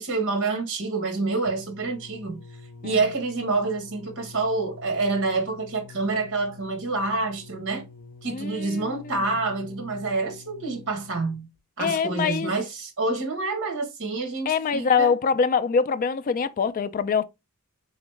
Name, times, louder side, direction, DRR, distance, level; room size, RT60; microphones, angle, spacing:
voice 1, 0.0-2.4 2.8-7.8 8.2-11.5 11.8-15.1, right 3 dB, 60° right, 1.2 m, -27 dB
sound 1, 1.5-11.6 12.4-12.5, left 4 dB, 80° left, 0.7 m, -46 dB
voice 2, 8.3-9.1 11.8-12.5 14.5-17.2, left 6 dB, 40° left, 0.3 m, -24 dB
3.8 x 3.1 x 3.2 m
head